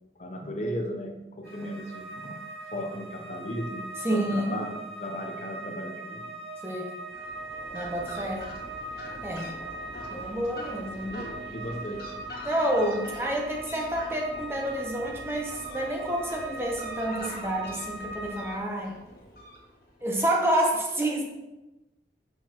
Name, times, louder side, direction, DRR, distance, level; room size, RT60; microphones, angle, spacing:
voice 1, 0.2-2.4 2.7-6.3 11.5-12.1, equal, 40° left, 3 dB, 0.7 m, -36 dB
sound 1, 1.4-18.6, right 2 dB, 75° right, 2.3 m, -40 dB
voice 2, 4.0-4.6 6.6-6.9 7.7-8.5 9.2-9.5 10.1-11.3 12.4-19.0 20.0-21.2, right 1 dB, 15° right, 0 dB, 0.8 m, -29 dB
Fowl, 7.0-20.0, left 1 dB, 55° left, 1.6 m, -43 dB
6.3 x 6.3 x 2.9 m, 1.0 s
head